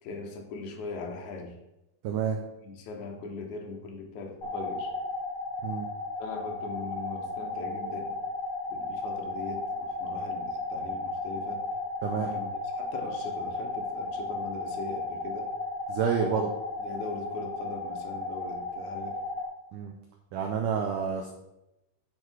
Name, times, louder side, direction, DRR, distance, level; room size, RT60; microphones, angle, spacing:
voice 1, 0.0-1.6 2.6-4.9 6.2-8.2 8.7-11.7 12.1-15.5 16.2-16.5 16.8-19.2, left 3 dB, 65° left, 2 dB, 2.3 m, -40 dB
voice 2, 2.0-2.4 5.6-5.9 12.0-12.3 15.9-16.5 19.7-19.9 20.3-21.3, right 7 dB, 75° right, 2 dB, 2.0 m, -29 dB
sound 1, 4.4-19.4, left 2 dB, 45° left, 1.5 m, -34 dB
9.7 x 4.7 x 4.6 m, 0.91 s
omnidirectional pair, 4.3 m